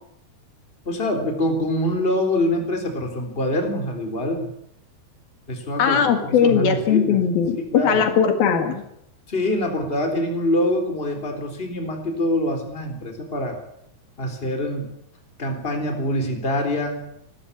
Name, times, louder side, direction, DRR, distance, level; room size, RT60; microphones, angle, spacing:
voice 1, 0.9-4.5 5.5-7.2 7.6-8.1 9.3-13.6 14.2-14.9 15.4-17.0, left 1 dB, 15° left, 4 dB, 3.5 m, -25 dB
voice 2, 5.8-8.8, left 7 dB, 70° left, 6 dB, 3.7 m, -19 dB
23.5 x 13.0 x 8.6 m, 0.75 s
omnidirectional pair, 4.5 m